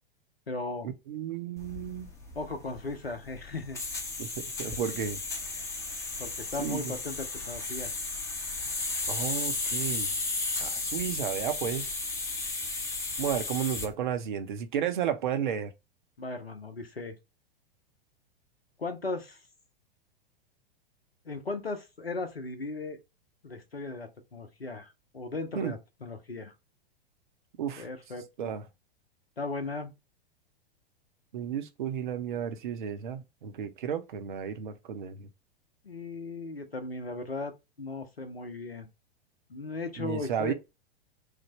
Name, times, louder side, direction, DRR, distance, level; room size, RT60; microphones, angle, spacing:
voice 1, 0.5-0.9 2.4-3.8 6.2-7.9 16.2-17.2 18.8-19.4 21.2-23.0 23.4-26.5 27.8-28.5 29.4-29.9 35.8-38.9 39.5-40.5, left 3 dB, 90° left, 0.7 m, -37 dB
voice 2, 1.1-2.1 4.2-5.2 6.6-6.9 9.1-10.1 10.6-11.9 13.2-15.7 25.6-25.7 27.6-27.9 28.4-28.6 31.3-35.3 40.0-40.5, right 8 dB, 55° right, 0.5 m, -33 dB
sound 1, 1.6-13.9, left 3 dB, 10° left, 0.6 m, -34 dB
3.2 x 2.0 x 2.9 m
figure-of-eight pair, 95°, 29 cm